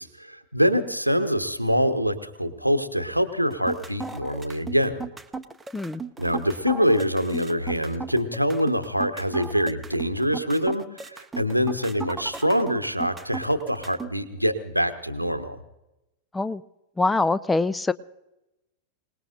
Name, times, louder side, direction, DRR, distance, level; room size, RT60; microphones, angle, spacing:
voice 1, 0.0-5.0 6.2-15.6, equal, 90° right, 9 dB, 1.1 m, -25 dB
sound 1, 3.5-14.1, right 5 dB, 10° right, 0.8 m, -36 dB
voice 2, 17.0-17.9, left 3 dB, 10° left, 18 dB, 0.5 m, -24 dB
26.5 x 19.0 x 2.6 m, 0.94 s
figure-of-eight pair, 90°, 0 cm